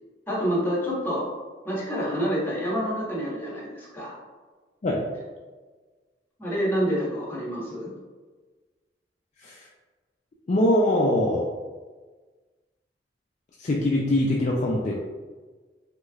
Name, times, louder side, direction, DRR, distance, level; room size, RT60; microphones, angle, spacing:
voice 1, 0.3-1.3 1.6-4.1 6.4-7.9, equal, 10° left, -6 dB, 1.1 m, -27 dB
voice 2, 10.5-11.5 13.6-14.9, left 1 dB, 40° left, -3 dB, 0.4 m, -23 dB
3.6 x 3.1 x 2.3 m, 1.4 s
head